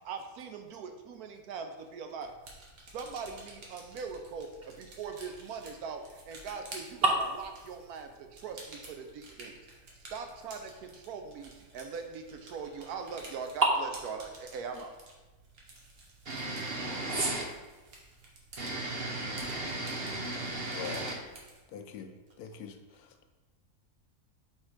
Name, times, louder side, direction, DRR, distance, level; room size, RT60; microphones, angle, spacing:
voice 1, 0.0-2.3 2.8-9.5 10.1-14.9, right 5 dB, 90° right, 6 dB, 1.2 m, -41 dB
sound 1, 2.2-21.6, right 2 dB, 70° right, 1.6 m, -52 dB
voice 2, 16.3-17.4 18.6-21.1, right 2 dB, 50° right, 0 dB, 0.8 m, -34 dB
voice 3, 21.7-22.1 22.4-23.1, left 8 dB, 85° left, 6 dB, 1.2 m, -42 dB
5.3 x 3.6 x 5.0 m, 1.2 s
omnidirectional pair, 1.6 m